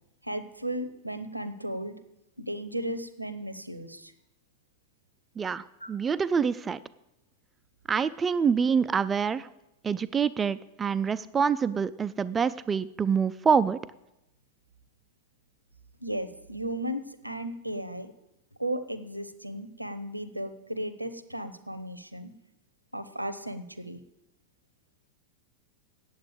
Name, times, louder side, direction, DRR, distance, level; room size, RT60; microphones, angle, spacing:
voice 1, 0.2-1.9 2.4-4.1 5.8-5.9 16.0-18.1 18.6-22.3 22.9-24.0, right 1 dB, 90° right, 12 dB, 0.8 m, -35 dB
voice 2, 5.4-6.8 7.9-9.5 9.8-13.8, right 6 dB, 20° right, 14 dB, 0.3 m, -26 dB
8.8 x 8.0 x 8.9 m, 0.90 s
figure-of-eight pair, 90°, 0 cm